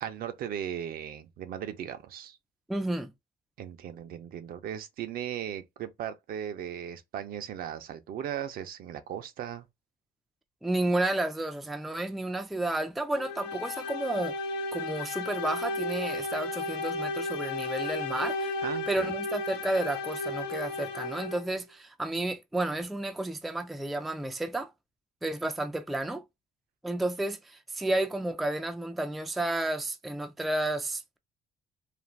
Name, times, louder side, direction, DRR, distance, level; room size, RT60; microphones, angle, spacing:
voice 1, 0.0-2.4 3.6-9.7 18.6-19.1, right 9 dB, 60° right, 0.5 m, -37 dB
voice 2, 2.7-3.1 10.6-14.4 14.7-18.5 18.9-24.7 25.2-26.2 26.8-31.2, right 2 dB, ahead, 0.3 m, -31 dB
sound 1, 13.2-21.5, left 2 dB, 80° left, 0.6 m, -34 dB
2.5 x 2.2 x 3.2 m
cardioid pair, 110°, 17 cm